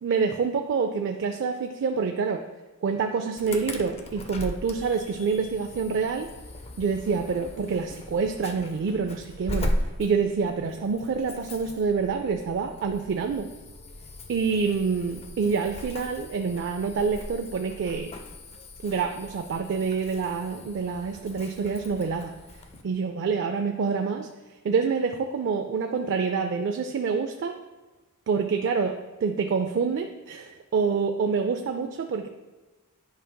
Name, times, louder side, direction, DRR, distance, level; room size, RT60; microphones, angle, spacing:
voice 1, 0.0-2.5 2.8-6.3 6.8-9.7 10.0-13.5 14.3-18.1 18.8-22.3 22.8-24.3 24.6-27.6 28.3-32.3, right 5 dB, 55° right, 5 dB, 0.3 m, -27 dB
Insect / Alarm, 3.4-22.8, left 1 dB, 25° left, 0.4 m, -38 dB
10.5 x 5.1 x 2.2 m, 1.2 s
head